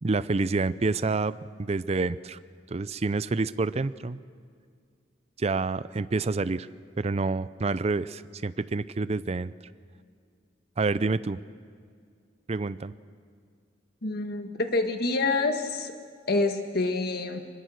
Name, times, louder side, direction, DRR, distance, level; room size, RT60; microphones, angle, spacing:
voice 1, 0.0-2.4 2.7-4.2 5.4-6.7 7.0-9.5 10.8-11.4 12.5-12.9, right 3 dB, 35° right, 16 dB, 0.5 m, -28 dB
voice 2, 14.0-15.9 16.3-17.4, left 3 dB, 60° left, 5 dB, 1.7 m, -27 dB
24.5 x 21.5 x 6.4 m, 2.1 s
head